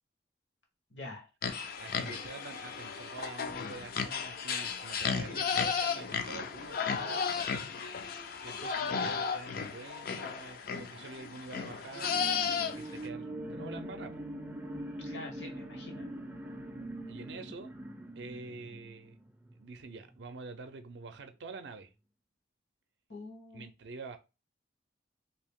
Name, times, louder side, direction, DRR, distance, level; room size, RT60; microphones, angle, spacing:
voice 1, 0.9-1.3 15.0-16.1 23.1-23.7, left 2 dB, 75° left, 1.2 m, -45 dB
sound 1, 1.4-13.1, left 6 dB, 55° left, 0.4 m, -34 dB
voice 2, 1.8-7.4 8.4-14.2 17.1-17.7 18.2-19.2 19.6-21.9 23.5-24.2, right 4 dB, 70° right, 0.5 m, -47 dB
sound 2, 11.9-19.7 20.1-20.2, right 1 dB, 10° right, 0.4 m, -43 dB
2.8 x 2.7 x 3.5 m
head